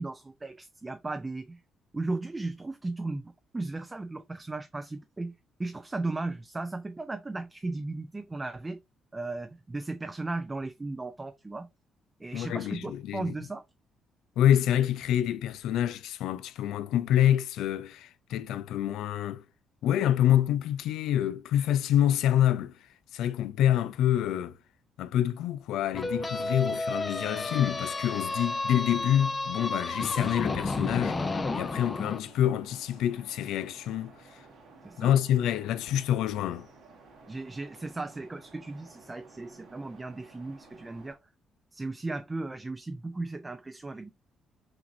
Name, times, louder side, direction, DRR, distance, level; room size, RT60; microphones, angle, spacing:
voice 1, 0.0-1.6 1.9-5.3 5.6-8.8 9.1-11.7 12.2-13.6 34.8-35.1 37.3-41.2 41.7-44.1, right 2 dB, 20° right, 0.4 m, -36 dB
voice 2, 12.3-13.3 14.4-19.4 19.8-22.7 23.1-24.6 25.0-34.1 35.0-36.7, left 11 dB, 85° left, 0.4 m, -27 dB
sound 1, 25.9-32.2, left 3 dB, 25° left, 0.6 m, -32 dB
sound 2, 31.1-41.1, right 3 dB, 90° right, 1.7 m, -54 dB
5.9 x 2.6 x 2.6 m
cardioid pair, 90°, 0 cm